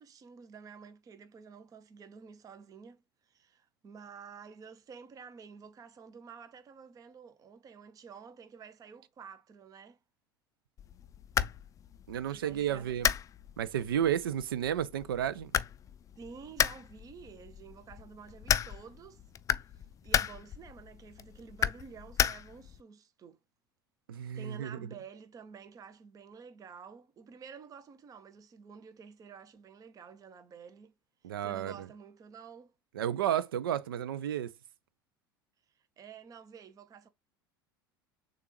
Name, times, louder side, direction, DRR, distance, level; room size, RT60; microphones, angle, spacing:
voice 1, 0.0-10.0 12.3-12.9 16.2-19.2 19.7-23.4 24.3-30.9 31.2-32.7 35.7-37.1, right 6 dB, 30° right, 0.7 m, -50 dB
sound 1, 10.8-22.8, left 9 dB, 25° left, 0.4 m, -34 dB
voice 2, 12.1-13.1 13.6-15.5 24.1-24.8 31.2-31.9 32.9-34.5, right 10 dB, 70° right, 0.5 m, -32 dB
6.7 x 2.4 x 3.1 m
figure-of-eight pair, 75°, 12 cm